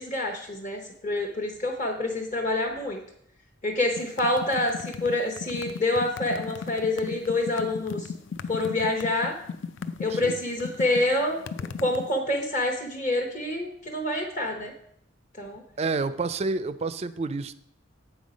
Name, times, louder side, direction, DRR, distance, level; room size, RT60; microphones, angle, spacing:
voice 1, 0.0-3.0 3.6-8.1 8.5-9.3 10.0-11.5 11.8-14.7 15.4-15.6, left 2 dB, 40° left, 1 dB, 0.9 m, -27 dB
sound 1, 4.0-12.1, left 5 dB, 65° left, 0.4 m, -36 dB
voice 2, 15.8-17.5, right 3 dB, 30° right, 15 dB, 0.3 m, -29 dB
8.2 x 5.5 x 5.0 m, 0.69 s
head